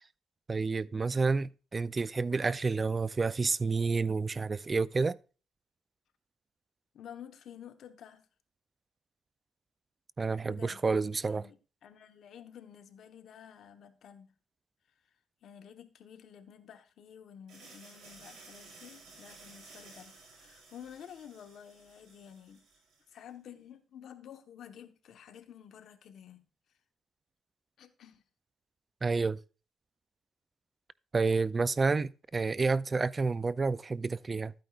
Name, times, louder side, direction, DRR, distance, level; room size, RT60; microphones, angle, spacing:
voice 1, 0.5-5.2 10.2-11.5 29.0-29.4 31.1-34.5, right 4 dB, 30° right, 0.4 m, -29 dB
voice 2, 6.9-8.2 10.4-10.8 11.2-14.3 14.9-15.0 15.4-22.6 23.1-26.4 27.8-28.2, left 9 dB, 70° left, 1.1 m, -51 dB
sound 1, 17.5-23.2, right 3 dB, 75° right, 4.7 m, -55 dB
12.5 x 9.0 x 2.4 m
cardioid pair, 90°, 0 cm